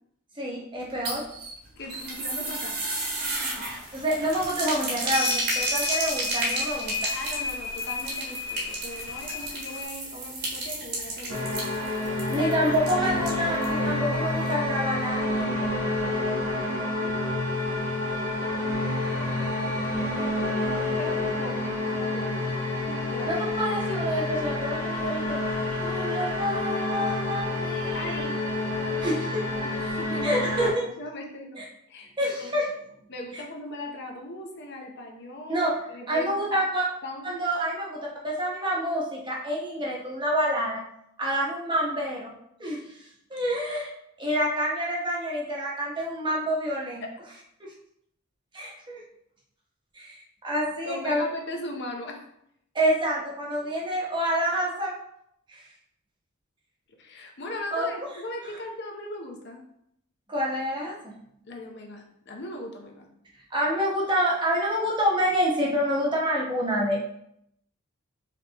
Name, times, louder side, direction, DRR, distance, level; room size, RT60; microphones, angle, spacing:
voice 1, 0.4-1.2 3.9-6.9 12.3-15.7 23.3-25.4 25.7-28.2 29.0-29.4 30.2-30.9 31.5-31.6 32.2-32.7 33.3-33.4 35.5-35.7 36.1-36.8 37.2-40.8 41.2-42.3 42.6-42.8 43.3-43.9 44.2-47.0 48.5-49.0 49.9-50.2 50.4-51.2 52.7-54.9 55.5-55.6 57.7-57.9 60.3-61.1 63.5-67.0, equal, 20° right, -4 dB, 1.0 m, -27 dB
sound 1, 0.8-13.8 14.1-14.2 14.5-14.6, right 2 dB, 50° right, 1.3 m, -33 dB
sound 2, 1.8-2.7 2.9-3.3 3.6-3.8 4.5-4.8 5.1-9.8, left 4 dB, 70° left, 1.1 m, -32 dB
voice 2, 1.8-2.8 7.1-11.5 12.3-12.8 17.0-17.4 18.4-19.3 21.0-22.5 22.8-23.4 27.9-28.4 28.8-30.5 31.0-32.1 32.4-32.5 33.1-36.6 37.0-37.4 47.0-47.1 50.8-52.2 57.0-59.6 61.5-63.1, left 1 dB, 50° left, 1 dB, 0.7 m, -39 dB
sound 3, 11.3-30.7, left 2 dB, 70° right, 1.5 m, -28 dB
4.9 x 3.4 x 2.8 m, 0.74 s
head